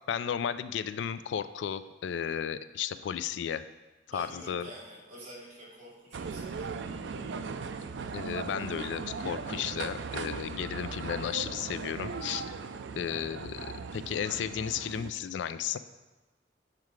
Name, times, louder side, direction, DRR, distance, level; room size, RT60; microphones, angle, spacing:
voice 1, 0.1-3.6 4.1-4.7 8.1-12.4 13.0-15.8, left 8 dB, 75° left, 13 dB, 0.3 m, -34 dB
voice 2, 4.1-6.8, right 1 dB, 35° right, -6 dB, 2.3 m, -48 dB
sound 1, 6.1-15.1, right 5 dB, 70° right, 0.4 m, -38 dB
7.4 x 4.8 x 4.7 m, 1.2 s
head